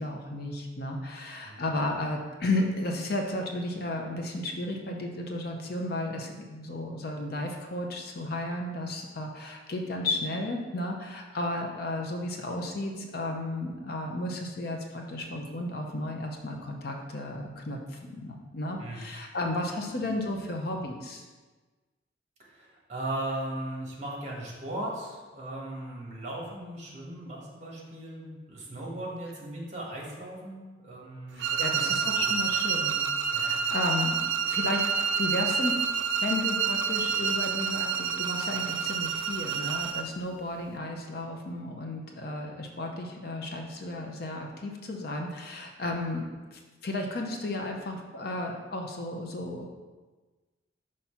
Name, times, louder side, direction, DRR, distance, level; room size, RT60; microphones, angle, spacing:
voice 1, 0.0-21.3 31.3-35.8 36.2-49.7, left 2 dB, 50° left, 2 dB, 0.6 m, -33 dB
voice 2, 22.4-32.3 33.3-33.5, right 1 dB, 35° right, -3 dB, 1.4 m, -38 dB
sound 1, 31.4-40.1, right 6 dB, 70° right, 0.4 m, -28 dB
5.8 x 3.2 x 5.6 m, 1.3 s
head